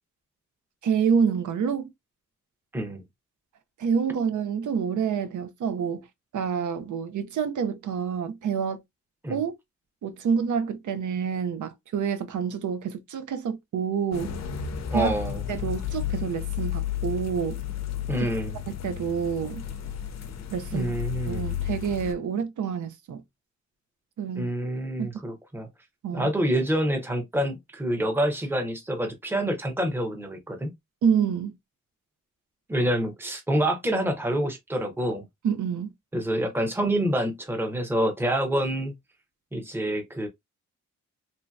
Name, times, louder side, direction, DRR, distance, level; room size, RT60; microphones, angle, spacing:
voice 1, 0.8-1.9 3.8-6.1 6.3-8.8 9.3-9.5 10.0-14.3 14.9-15.1 15.5-17.6 18.2-18.3 18.7-19.7 20.5-20.9 21.3-23.2 24.2-24.5 25.0-25.1 26.0-26.3 31.0-31.6 35.4-35.9, right 7 dB, 85° right, 0.6 m, -27 dB
sound 1, 14.1-22.1, left 10 dB, 65° left, 0.5 m, -32 dB
voice 2, 14.9-15.4 18.1-18.6 20.7-21.4 24.4-25.7 26.1-30.7 32.7-35.2 36.1-38.9 39.5-40.3, right 1 dB, 10° right, 0.6 m, -27 dB
3.1 x 2.7 x 2.2 m
wide cardioid pair, 170°, 30 cm